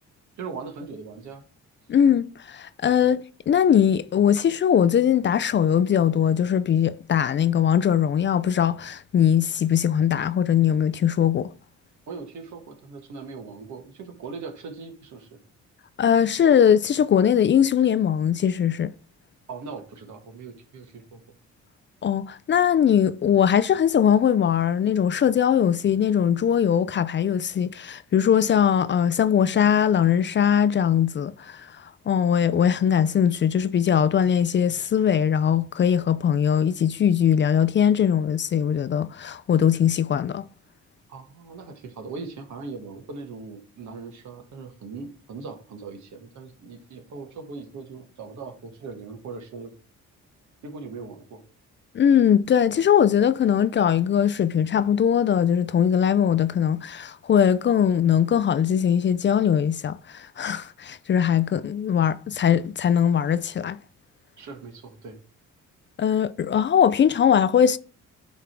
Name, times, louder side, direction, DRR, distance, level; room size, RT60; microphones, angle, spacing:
voice 1, 0.4-1.4 3.0-3.1 12.1-15.3 19.5-21.2 41.1-49.7 50.6-51.4 64.4-65.2, right 4 dB, 70° right, 1.7 m, -39 dB
voice 2, 1.9-11.5 16.0-18.9 22.0-31.7 32.1-40.4 51.9-63.8 66.0-67.8, left 8 dB, 40° left, 0.4 m, -21 dB
9.5 x 3.6 x 4.5 m
cardioid pair, 90°, 30 cm